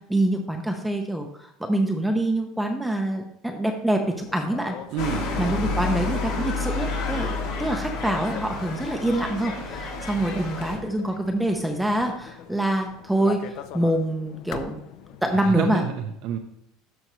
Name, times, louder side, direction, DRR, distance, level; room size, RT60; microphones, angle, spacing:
voice 1, 0.1-4.8 5.4-7.3 7.6-14.8 15.2-15.8, right 1 dB, ahead, 3 dB, 0.6 m, -25 dB
sound 1, 4.0-15.4, left 9 dB, 55° left, 0.5 m, -43 dB
voice 2, 4.9-5.3 15.3-16.4, right 8 dB, 60° right, 5 dB, 0.6 m, -28 dB
sound 2, 5.0-10.8, left 3 dB, 75° left, 2.1 m, -29 dB
12.5 x 4.4 x 3.1 m, 0.75 s
cardioid pair, 145°, 0 cm